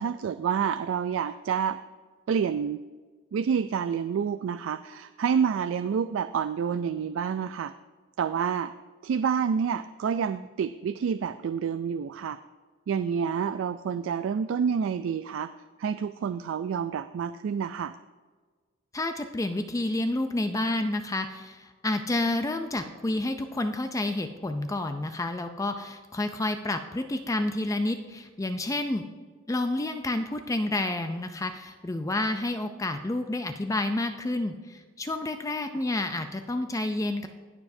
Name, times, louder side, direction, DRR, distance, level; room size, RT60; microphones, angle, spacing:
voice 1, 0.0-1.8 2.3-2.8 3.3-7.7 8.2-8.7 9.0-12.4 12.9-15.5 15.8-17.9, right 7 dB, 70° right, 11 dB, 0.3 m, -28 dB
voice 2, 18.9-29.1 29.5-37.3, left 2 dB, 15° left, 7 dB, 0.4 m, -29 dB
20.5 x 7.0 x 2.7 m, 1.5 s
head